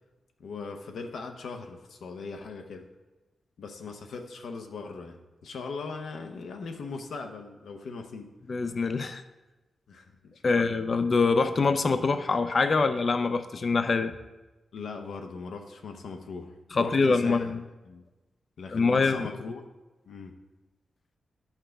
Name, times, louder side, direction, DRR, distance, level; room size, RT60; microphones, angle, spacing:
voice 1, 0.4-2.8 3.6-8.3 9.9-10.7 14.7-17.5 17.9-18.0 18.6-19.6 20.1-20.3, left 4 dB, 80° left, 4 dB, 0.7 m, -39 dB
voice 2, 8.5-9.2 10.4-14.1 16.7-17.6 18.7-19.2, left 4 dB, 35° left, 10 dB, 0.4 m, -24 dB
10.5 x 5.8 x 3.4 m, 1.1 s
wide cardioid pair, 160°, 0 cm